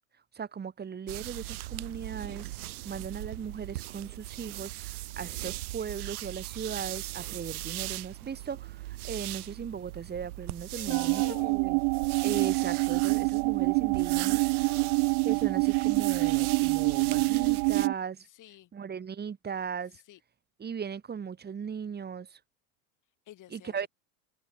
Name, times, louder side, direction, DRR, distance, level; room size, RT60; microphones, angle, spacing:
voice 1, 0.3-2.5 2.8-11.8 12.2-14.4 15.2-18.3 18.7-20.0 20.6-22.4 23.5-23.9, right 7 dB, 20° right, 2.3 m, -38 dB
sound 1, 1.1-17.9, right 17 dB, 75° right, 1.4 m, -39 dB
voice 2, 10.7-11.6 14.3-15.2 18.3-18.7 19.9-20.2 23.3-23.9, left 13 dB, 45° left, 5.5 m, -49 dB
sound 2, 10.9-17.9, right 40 dB or more, 50° right, 0.6 m, -26 dB
hypercardioid pair, 100°, 44 cm